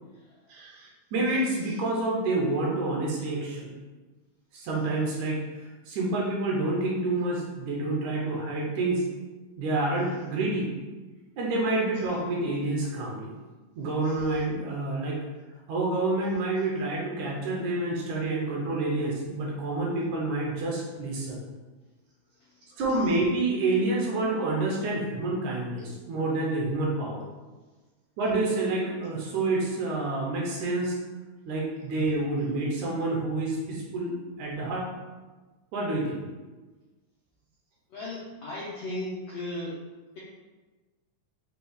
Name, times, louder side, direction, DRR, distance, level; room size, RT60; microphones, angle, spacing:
voice 1, 0.5-3.7 4.5-5.4 5.9-9.0 9.6-10.7 11.4-13.4 13.8-15.2 15.7-21.4 22.8-27.2 28.2-31.0 31.5-34.9 35.7-36.2, right 2 dB, 75° right, -3 dB, 2.0 m, -28 dB
voice 2, 37.9-39.8, left 1 dB, 80° left, -8 dB, 1.4 m, -35 dB
6.0 x 2.3 x 3.4 m, 1.3 s
omnidirectional pair, 3.8 m